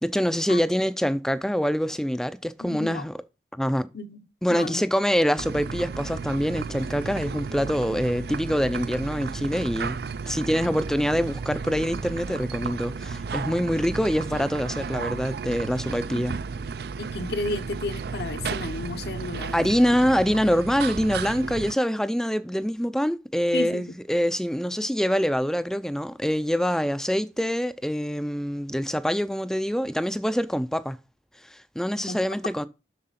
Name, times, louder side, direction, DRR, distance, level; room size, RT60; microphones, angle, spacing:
voice 1, 0.0-3.1 3.5-3.9 4.4-10.0 10.3-16.3 19.5-31.0 31.5-32.7, equal, 5° left, 0.4 m, -25 dB
voice 2, 2.6-3.1 3.9-4.2 4.5-4.8 16.1-16.3 17.0-19.7 23.5-24.0 32.1-32.2, left 2 dB, 65° left, 0.9 m, -33 dB
sound 1, 5.4-21.7, right 5 dB, 60° right, 0.4 m, -33 dB
7.5 x 6.5 x 5.7 m
head